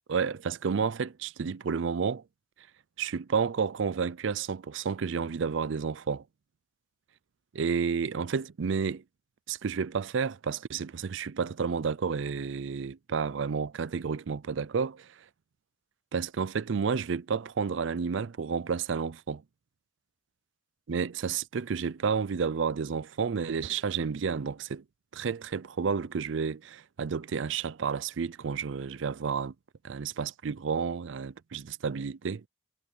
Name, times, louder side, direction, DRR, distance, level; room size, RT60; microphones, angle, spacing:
voice 1, 0.1-2.2 3.0-6.2 7.5-9.0 9.5-15.1 16.1-19.4 20.9-24.8 25.1-29.5 29.8-32.5, right 6 dB, 70° right, 0.4 m, -31 dB
head